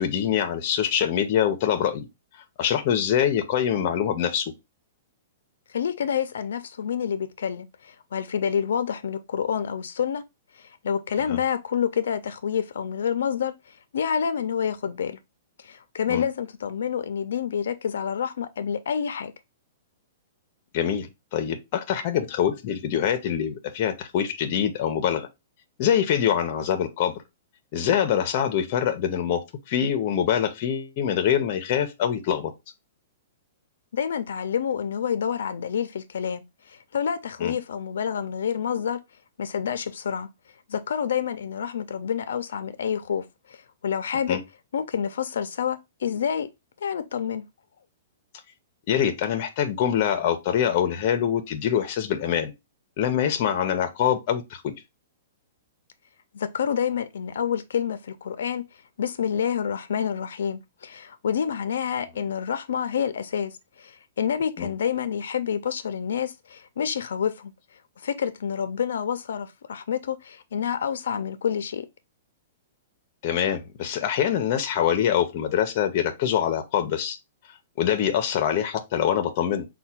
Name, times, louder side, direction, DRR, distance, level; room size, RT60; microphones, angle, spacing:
voice 1, 0.0-2.1 2.6-4.5 11.3-11.4 16.1-16.2 20.7-25.3 25.8-27.1 27.7-32.5 37.4-37.5 44.3-44.4 48.9-52.5 53.0-54.7 64.6-64.7 73.2-77.2 77.8-79.7, left 9 dB, 30° left, 0.6 m, -24 dB
voice 2, 5.7-10.2 10.6-15.2 15.6-19.3 33.9-39.0 39.4-40.3 40.7-44.4 44.7-46.5 46.8-47.5 56.3-58.6 59.0-67.5 68.0-71.9, left 8 dB, 80° left, 0.4 m, -28 dB
4.4 x 2.2 x 4.2 m
hypercardioid pair, 175°, 0 cm